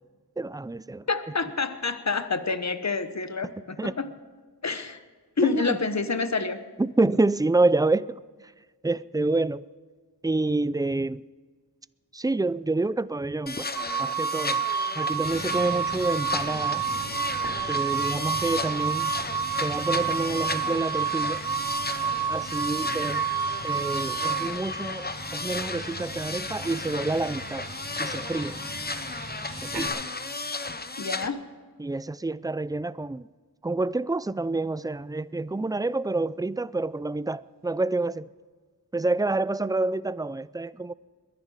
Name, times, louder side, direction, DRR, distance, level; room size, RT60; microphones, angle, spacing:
voice 1, 0.4-1.0 3.8-3.9 5.4-5.8 6.8-8.1 8.8-9.6 10.2-11.2 12.1-13.7 14.0-14.6 15.0-16.8 17.7-19.1 19.6-21.4 22.3-23.3 23.6-27.6 28.0-28.6 29.6-30.0 31.8-33.3 33.6-38.3 38.9-40.9, right 2 dB, 10° right, 0.3 m, -27 dB
voice 2, 1.1-4.1 4.6-5.0 5.4-6.6 31.0-31.5, left 4 dB, 45° left, 1.1 m, -28 dB
sound 1, 13.5-31.3, left 3 dB, 25° left, 0.8 m, -34 dB
sound 2, 13.8-24.5, right 7 dB, 60° right, 1.1 m, -29 dB
sound 3, 15.2-29.9, right 2 dB, 85° right, 3.4 m, -41 dB
22.0 x 10.5 x 4.9 m
wide cardioid pair, 45°, 39 cm